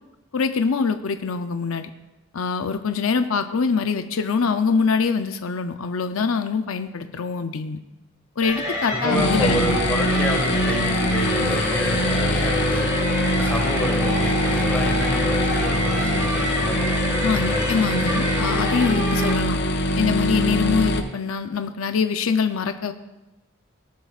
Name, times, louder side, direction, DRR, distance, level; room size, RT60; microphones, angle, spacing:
voice 1, 0.3-1.9 2.3-7.8 8.4-9.8 17.2-19.6 20.0-22.9, left 5 dB, 75° left, 8 dB, 0.6 m, -24 dB
sound 1, 8.4-19.3, left 1 dB, 20° right, 4.5 m, -27 dB
voice 2, 8.9-12.9 13.3-17.7 17.9-18.4, equal, 10° left, 0 dB, 1.7 m, -28 dB
sound 2, 9.1-21.0, equal, 55° left, 0.9 m, -23 dB
18.0 x 10.5 x 2.4 m, 1.0 s
head